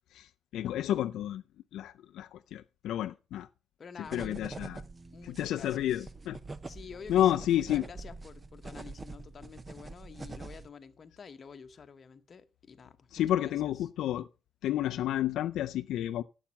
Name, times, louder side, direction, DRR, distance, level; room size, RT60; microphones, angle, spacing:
voice 1, 0.1-1.4 1.7-3.5 4.1-4.8 5.2-6.4 7.1-7.8 13.1-14.3 14.6-16.2, left 12 dB, 70° left, 0.4 m, -30 dB
voice 2, 3.8-4.6 5.1-6.1 6.6-13.5, left 6 dB, 30° left, 1.0 m, -49 dB
sound 1, 4.0-10.7, right 3 dB, 20° right, 0.6 m, -45 dB
11.5 x 7.3 x 5.7 m
cardioid pair, 145°, 0 cm